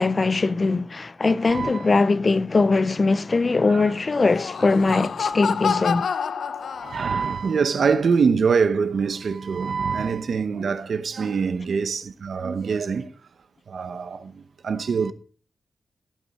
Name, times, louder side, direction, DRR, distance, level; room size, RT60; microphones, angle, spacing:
voice 1, 0.0-6.1, left 3 dB, 35° left, 0.4 m, -21 dB
voice 2, 1.5-1.9 3.7-3.8 4.9-5.0 6.8-13.1 13.7-15.1, right 5 dB, 65° right, 0.9 m, -24 dB
Laughter, 4.2-7.3, left 6 dB, 80° left, 0.6 m, -28 dB
15.5 x 8.9 x 4.2 m
wide cardioid pair, 155°, 0 cm